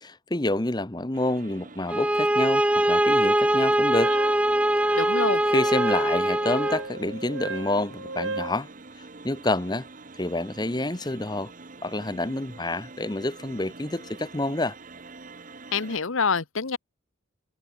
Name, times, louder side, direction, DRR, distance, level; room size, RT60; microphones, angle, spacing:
voice 1, 0.0-2.6 2.9-4.1 5.5-8.7 9.2-9.9 10.2-11.5 11.8-14.7, left 2 dB, 20° left, 1.0 m, -28 dB
sound 1, 1.1-16.0, right 3 dB, 40° right, 1.3 m, -46 dB
sound 2, 1.9-6.9, right 1 dB, 5° right, 0.5 m, -22 dB
Wind instrument woodwind instrument, 4.0-8.6, right 3 dB, 65° right, 4.1 m, -36 dB
voice 2, 4.9-5.4 15.7-16.8, left 5 dB, 80° left, 1.2 m, -26 dB
head